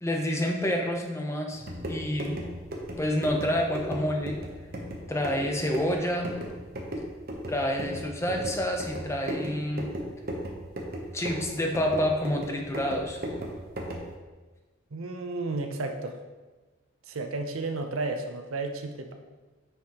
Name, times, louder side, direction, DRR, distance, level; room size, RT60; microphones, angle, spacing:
voice 1, 0.0-2.4 3.0-4.4 5.1-6.3 7.5-9.9 11.1-13.2, equal, 15° left, 2 dB, 0.6 m, -28 dB
sound 1, 1.5-14.1, equal, 45° right, 0.9 m, -37 dB
voice 2, 14.9-16.2 17.1-19.1, right 3 dB, 85° right, 5 dB, 0.7 m, -32 dB
9.1 x 4.8 x 3.0 m, 1.3 s
head